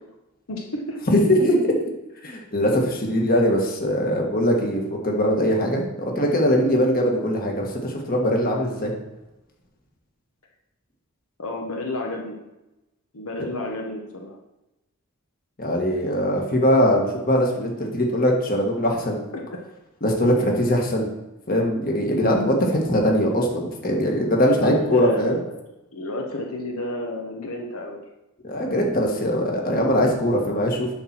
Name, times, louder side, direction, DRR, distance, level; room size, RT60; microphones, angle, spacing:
voice 1, 0.5-1.0 2.2-2.4 11.4-12.4 13.1-14.4 20.3-20.5 24.5-25.4 25.9-28.0, left 1 dB, 75° left, 1 dB, 1.1 m, -31 dB
voice 2, 1.1-1.8 2.2-8.9 13.4-13.5 15.6-19.2 20.0-21.1 21.5-25.4 28.4-30.9, equal, 40° left, 0 dB, 1.6 m, -21 dB
11.0 x 4.3 x 6.0 m, 0.97 s
head